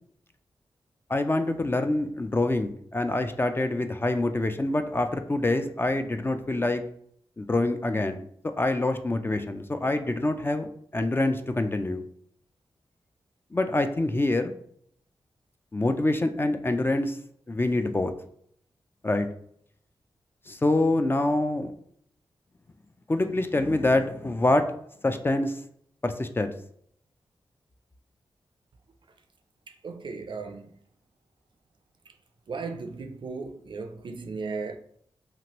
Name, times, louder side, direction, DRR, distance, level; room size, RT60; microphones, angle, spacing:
voice 1, 1.1-6.8 7.4-8.2 8.6-12.0 13.5-14.5 15.7-17.2 17.5-18.1 19.0-19.3 20.5-21.7 23.1-24.7 25.0-25.5 26.0-26.5, left 2 dB, 25° left, 0.3 m, -25 dB
voice 2, 29.8-30.7 32.5-34.8, right 4 dB, 55° right, 0.4 m, -36 dB
2.9 x 2.5 x 2.9 m
cardioid pair, 45°, 10 cm